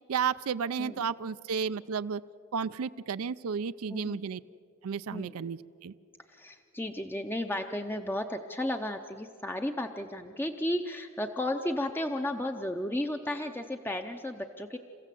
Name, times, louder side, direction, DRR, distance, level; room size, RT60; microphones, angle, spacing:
voice 1, 0.1-2.2 2.5-4.4 4.8-5.9, right 6 dB, 85° right, 14 dB, 0.5 m, -32 dB
voice 2, 0.8-1.1 3.9-4.2 5.1-5.4 6.3-14.8, left 1 dB, 10° left, 6 dB, 0.5 m, -34 dB
29.0 x 15.5 x 7.6 m, 2.6 s
head